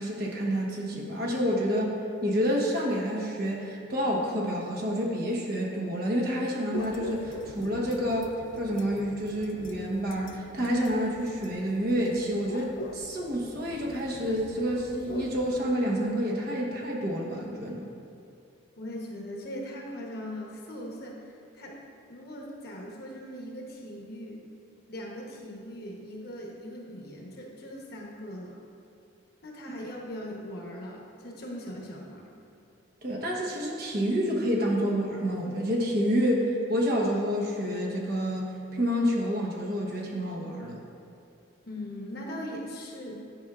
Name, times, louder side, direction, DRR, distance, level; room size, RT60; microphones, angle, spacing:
voice 1, 0.0-2.0 2.2-17.9 33.0-40.8, equal, 50° right, -2 dB, 1.0 m, -28 dB
sound 1, 6.7-15.6, left 1 dB, 65° left, 0.4 m, -43 dB
voice 2, 18.8-21.2 21.5-21.8 22.1-24.5 24.9-28.6 29.4-32.3 41.7-43.2, equal, 50° left, -1 dB, 0.9 m, -40 dB
10.5 x 5.9 x 2.4 m, 2.7 s
head